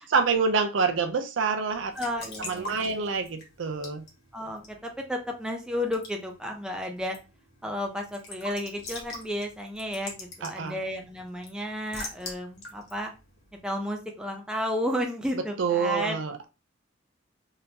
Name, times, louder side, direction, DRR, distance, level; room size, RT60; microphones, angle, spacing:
voice 1, 0.0-1.9 2.4-4.0 10.4-10.8 15.6-16.4, right 5 dB, 65° right, 0.5 m, -27 dB
Raindrop / Drip / Trickle dribble, 1.7-14.2, left 2 dB, 55° left, 1.4 m, -45 dB
voice 2, 1.9-3.0 4.3-7.2 7.6-13.1 13.6-16.2, left 1 dB, 5° right, 0.5 m, -32 dB
3.5 x 2.7 x 2.8 m
head